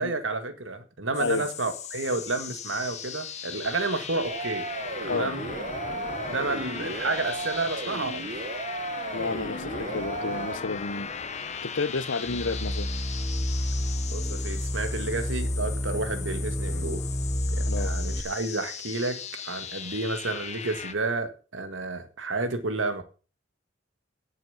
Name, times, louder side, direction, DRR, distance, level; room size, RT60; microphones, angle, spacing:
voice 1, 0.0-4.6 5.0-5.5 6.3-8.3 14.1-17.0 17.4-23.0, right 3 dB, 85° right, 1.8 m, -31 dB
sound 1, 1.1-20.9, left 6 dB, 35° left, 0.9 m, -38 dB
voice 2, 1.2-1.5 5.1-5.3 9.1-11.1 11.6-12.9 17.7-17.9, left 4 dB, 80° left, 0.9 m, -31 dB
sound 2, 4.2-10.6, right 3 dB, 45° right, 1.5 m, -35 dB
sound 3, 12.3-18.2, equal, ahead, 1.0 m, -29 dB
10.5 x 7.5 x 7.0 m
head